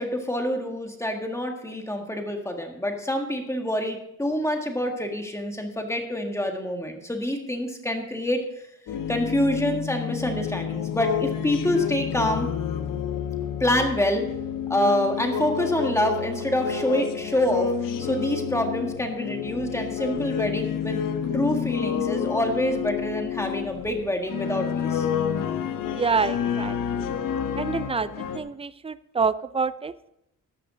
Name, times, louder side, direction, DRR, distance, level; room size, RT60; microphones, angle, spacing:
voice 1, 0.0-8.4 9.1-12.5 13.6-14.2 14.7-17.7 18.0-21.0 21.3-25.1, left 1 dB, 10° left, 3 dB, 1.7 m, -26 dB
sound 1, 8.9-28.4, left 8 dB, 80° left, 1.1 m, -29 dB
voice 2, 25.9-26.8 27.6-28.1 28.3-29.9, right 5 dB, 20° right, 15 dB, 0.4 m, -26 dB
14.0 x 10.5 x 3.8 m, 0.80 s
cardioid pair, 140°, 33 cm